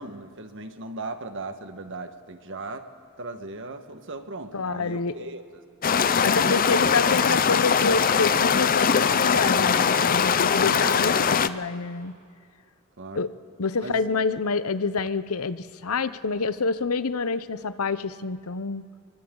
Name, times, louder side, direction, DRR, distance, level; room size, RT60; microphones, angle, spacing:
voice 1, 0.0-2.9 3.2-5.6 6.1-6.8 10.6-11.4 13.0-13.3 13.8-14.0, right 2 dB, 55° right, 7 dB, 1.5 m, -38 dB
voice 2, 4.5-5.3 6.2-12.1 13.1-13.3 13.6-18.8, left 4 dB, 75° left, 14 dB, 0.8 m, -27 dB
sound 1, 5.8-11.5, left 6 dB, 40° left, 0.6 m, -21 dB
29.5 x 23.5 x 3.9 m, 2.4 s
head